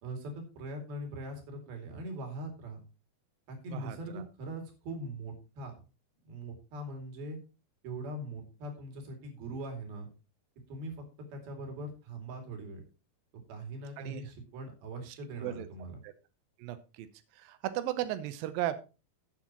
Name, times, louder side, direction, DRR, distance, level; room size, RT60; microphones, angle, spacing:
voice 1, 0.0-2.8 3.5-5.7 6.3-7.4 7.8-10.1 10.7-11.0 11.3-12.8 13.5-16.0, right 1 dB, 60° right, 3 dB, 4.2 m, -41 dB
voice 2, 3.7-4.2 14.0-14.2 15.1-15.2 15.4-15.7 16.0-16.1 16.6-17.1 17.4-18.8, right 13 dB, 80° right, 11 dB, 2.0 m, -36 dB
15.0 x 7.3 x 2.9 m, 0.31 s
omnidirectional pair, 5.1 m